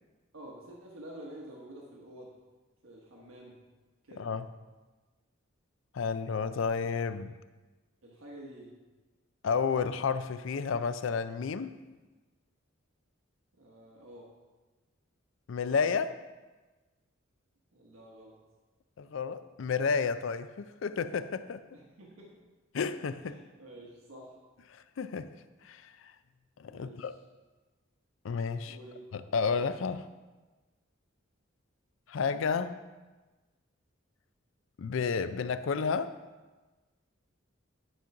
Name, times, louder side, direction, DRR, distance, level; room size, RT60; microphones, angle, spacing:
voice 1, 0.3-2.4 2.8-3.6 4.0-4.3 7.0-7.3 8.0-8.7 13.6-14.3 17.7-18.4 21.7-22.4 23.2-24.4 26.7-27.1 28.6-29.3, right 1 dB, 85° right, -2 dB, 1.2 m, -49 dB
voice 2, 4.2-4.5 5.9-7.3 9.4-11.8 15.5-16.1 19.0-21.6 22.7-23.3 24.7-25.3 25.6-25.9 26.6-27.1 28.2-28.8 29.1-30.1 32.1-32.8 34.8-36.1, left 5 dB, 70° left, 12 dB, 0.4 m, -31 dB
10.0 x 3.9 x 5.8 m, 1.2 s
head